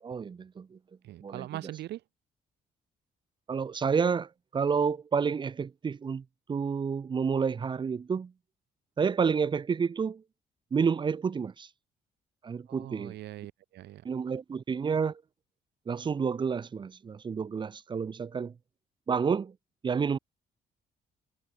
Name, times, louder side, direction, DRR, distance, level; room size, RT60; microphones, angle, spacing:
voice 1, 0.0-0.8 1.2-1.5 3.5-8.3 9.0-10.2 10.7-11.7 12.4-13.1 14.0-15.2 15.9-18.5 19.1-19.5 19.8-20.2, right 6 dB, 25° right, 2.4 m, -29 dB
voice 2, 1.0-2.0 12.7-14.0, right 14 dB, 80° right, 5.9 m, -41 dB
cardioid pair, 175°, 17 cm